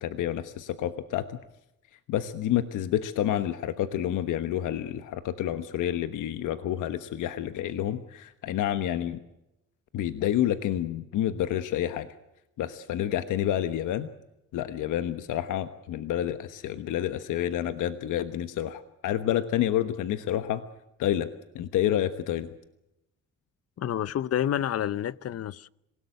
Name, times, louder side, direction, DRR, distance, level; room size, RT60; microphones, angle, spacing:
voice 1, 0.0-1.4 2.1-9.2 9.9-12.1 12.6-14.1 14.5-20.6 21.0-21.3 21.5-22.5, left 11 dB, 85° left, 1.3 m, -29 dB
voice 2, 23.8-25.7, left 10 dB, 55° left, 0.8 m, -29 dB
27.5 x 17.5 x 8.0 m
cardioid pair, 90°, 30 cm